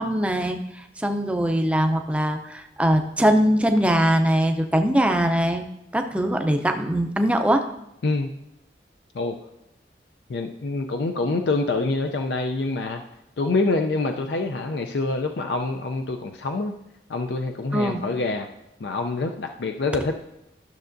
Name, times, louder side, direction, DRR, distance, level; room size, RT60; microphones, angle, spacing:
voice 1, 0.0-5.6 5.9-7.6 17.7-18.0, equal, 5° right, 5 dB, 0.5 m, -22 dB
voice 2, 10.3-13.0 13.4-16.7 17.1-18.5 18.8-20.2, left 3 dB, 75° left, 4 dB, 0.5 m, -26 dB
12.0 x 6.5 x 2.6 m, 0.85 s
head